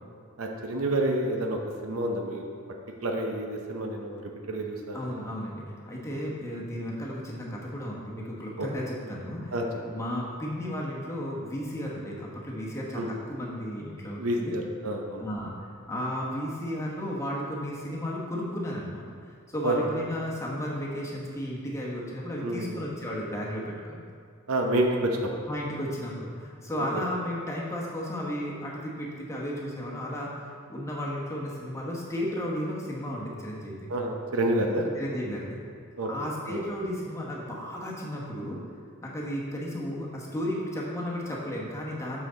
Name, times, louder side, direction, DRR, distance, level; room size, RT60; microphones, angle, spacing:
voice 1, 0.4-2.4 3.0-5.2 6.1-6.2 8.6-8.7 9.5-9.6 12.9-13.2 14.2-15.2 19.6-19.9 22.4-22.8 24.5-25.3 26.8-27.0 33.9-34.9 36.0-36.1 36.5-36.6, right 1 dB, 75° right, 2 dB, 0.8 m, -29 dB
voice 2, 4.9-9.5 9.8-14.5 15.2-19.0 19.5-24.0 25.5-30.3 30.7-33.8 34.9-35.6 36.1-38.6 39.0-42.3, equal, 15° left, -4 dB, 1.1 m, -34 dB
6.4 x 5.8 x 3.8 m, 2.2 s
head